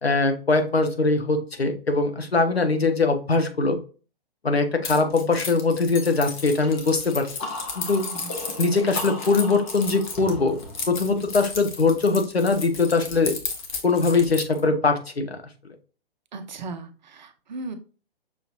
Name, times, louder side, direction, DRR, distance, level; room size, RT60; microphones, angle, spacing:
voice 1, 0.0-3.8 4.4-7.3 7.8-8.1 8.6-10.5 10.9-13.3 13.8-15.4, left 3 dB, 80° left, 6 dB, 1.0 m, -22 dB
Keys jangling, 4.8-14.6, left 4 dB, 50° left, 1.1 m, -34 dB
sound 1, 6.6-12.2, left 2 dB, 15° left, 0.4 m, -38 dB
voice 2, 16.3-17.8, right 3 dB, 45° right, 8 dB, 0.7 m, -37 dB
6.3 x 2.9 x 2.4 m, 0.35 s
figure-of-eight pair, 125°, 31 cm